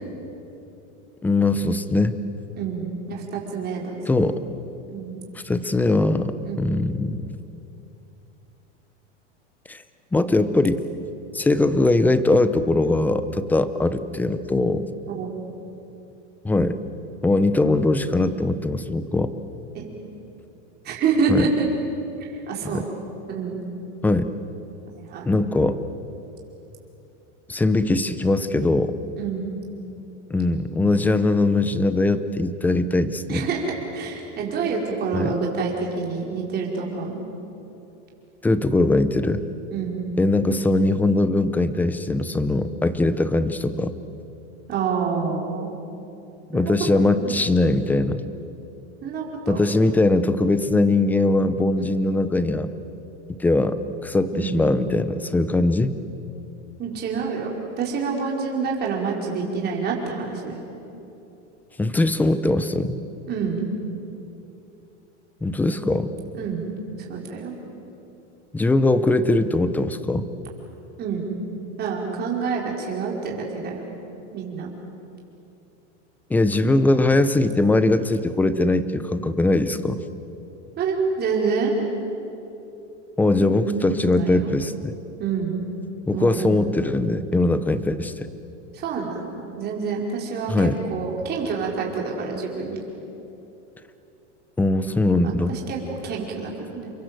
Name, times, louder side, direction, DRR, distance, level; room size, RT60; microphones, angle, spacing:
voice 1, 1.2-2.2 4.1-4.4 5.4-7.2 9.7-9.8 10.1-10.8 11.3-14.9 16.4-16.8 17.2-19.3 21.3-21.5 22.6-22.8 24.0-24.3 25.3-25.8 27.5-28.9 30.3-33.4 35.1-35.4 38.4-39.4 40.2-44.0 46.5-48.2 49.5-52.7 53.3-56.0 61.8-63.0 65.4-66.1 68.5-70.3 76.3-80.0 83.2-85.0 86.1-88.3 90.5-90.8 94.6-95.5, left 2 dB, 5° left, 12 dB, 0.6 m, -21 dB
voice 2, 2.6-4.0 4.9-5.2 6.4-6.6 15.1-15.3 19.7-19.9 20.8-21.7 22.2-22.9 23.3-23.6 24.9-25.3 29.2-29.5 33.3-37.2 39.7-40.1 44.7-45.7 46.5-46.7 47.1-47.3 49.0-49.6 51.8-51.9 54.3-54.6 56.8-60.6 63.3-63.6 66.3-66.6 67.1-67.5 71.0-71.3 71.8-73.8 74.3-74.7 80.8-81.8 83.5-84.5 85.2-85.6 86.1-86.6 88.7-92.8 95.2-96.9, right 5 dB, 25° right, -1 dB, 5.1 m, -27 dB
29.5 x 23.5 x 7.9 m, 2.9 s
supercardioid pair, 155°, 36 cm